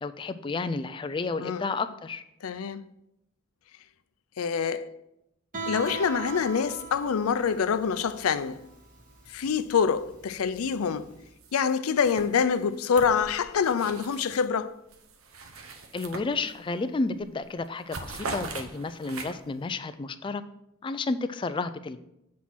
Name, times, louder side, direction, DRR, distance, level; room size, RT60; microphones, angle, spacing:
voice 1, 0.0-2.2 15.9-20.4 20.8-22.0, left 3 dB, 25° left, 0.3 m, -31 dB
voice 2, 2.4-2.9 4.4-4.8 5.7-8.6 9.3-11.1 11.5-14.7, left 6 dB, 90° left, 0.5 m, -26 dB
Guitar, 5.5-11.2, right 3 dB, 40° right, 1.9 m, -40 dB
sound 1, 11.4-11.7 12.0-14.5 14.9-16.8 17.1-17.4 17.6-19.6, right 3 dB, 75° right, 0.9 m, -40 dB
7.5 x 4.2 x 6.0 m
head